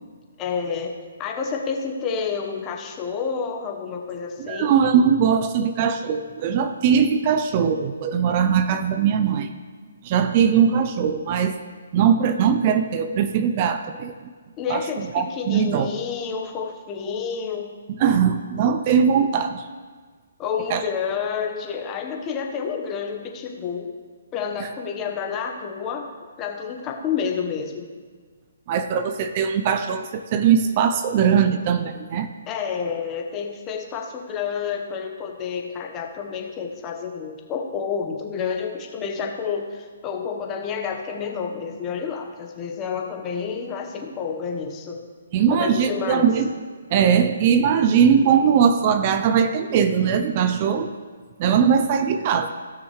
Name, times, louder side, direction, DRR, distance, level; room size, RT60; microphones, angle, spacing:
voice 1, 0.4-4.7 14.6-17.8 20.4-23.9 24.3-26.1 26.4-27.9 32.5-45.0 45.5-46.3, left 6 dB, 20° left, 2 dB, 1.1 m, -29 dB
voice 2, 4.4-9.5 10.0-11.6 11.9-14.1 14.7-15.9 18.0-19.7 20.7-20.8 24.6-24.7 28.7-32.3 45.3-46.5 46.9-50.9 51.4-52.5, right 7 dB, 35° right, 9 dB, 0.5 m, -20 dB
16.0 x 6.2 x 3.2 m, 1.5 s
hypercardioid pair, 150°, 0 cm